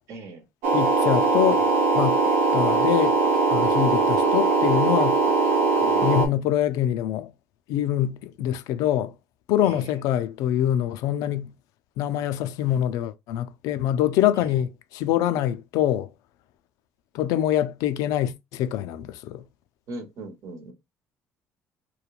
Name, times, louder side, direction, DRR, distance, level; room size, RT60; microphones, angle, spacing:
voice 1, 0.1-0.4 5.8-6.4 9.6-9.8 14.4-14.5 19.9-20.7, right 2 dB, 60° right, 0.9 m, -39 dB
sound 1, 0.6-6.3, right 3 dB, 85° right, 0.7 m, -21 dB
voice 2, 0.7-1.7 1.9-2.2 2.5-3.2 3.5-5.2 6.0-7.3 7.7-9.1 9.5-11.5 12.0-16.1 17.1-19.4, left 11 dB, 80° left, 0.3 m, -24 dB
3.0 x 2.2 x 2.3 m
cardioid pair, 95°, 6 cm